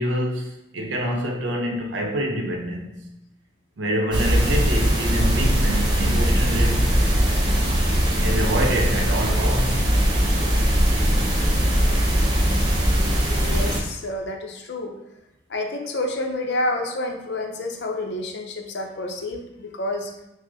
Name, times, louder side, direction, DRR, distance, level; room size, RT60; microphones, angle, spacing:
voice 1, 0.0-3.0 3.8-7.0 8.2-9.8, right 1 dB, 90° right, 0.6 m, -26 dB
sound 1, 4.1-13.8, equal, 25° right, 0.6 m, -20 dB
voice 2, 13.4-15.0 15.5-20.1, left 1 dB, 70° left, 0.5 m, -29 dB
6.0 x 2.0 x 2.6 m
head